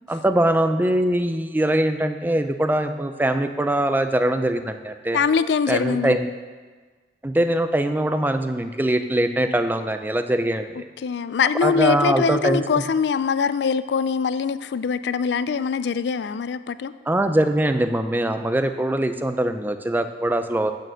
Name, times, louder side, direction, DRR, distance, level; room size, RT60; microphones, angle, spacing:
voice 1, 0.1-5.2 5.7-6.3 7.2-10.7 11.6-12.6 17.1-20.7, right 1 dB, 10° right, 8 dB, 0.4 m, -22 dB
voice 2, 5.1-6.2 11.0-16.9, left 6 dB, 75° left, 15 dB, 0.4 m, -23 dB
8.8 x 6.6 x 6.3 m, 1.4 s
head